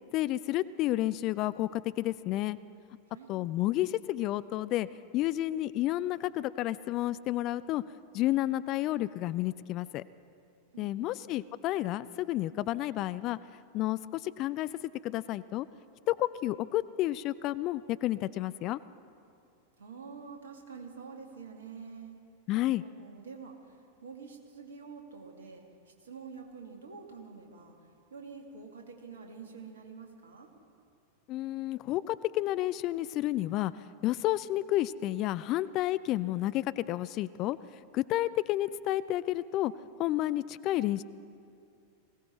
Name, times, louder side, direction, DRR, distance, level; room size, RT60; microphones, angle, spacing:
voice 1, 0.1-2.6 3.3-4.9 5.1-7.8 8.1-10.0 10.8-13.4 13.7-14.7 15.0-15.7 16.1-18.8 22.5-22.8 31.3-33.7 34.0-37.6 37.9-39.7 40.0-41.0, left 15 dB, 40° left, 17 dB, 0.3 m, -31 dB
voice 2, 10.7-11.2 19.8-22.2 22.8-30.5, right 5 dB, 65° right, 2 dB, 2.1 m, -47 dB
20.5 x 16.5 x 4.3 m, 2.5 s
figure-of-eight pair, 90°, 0 cm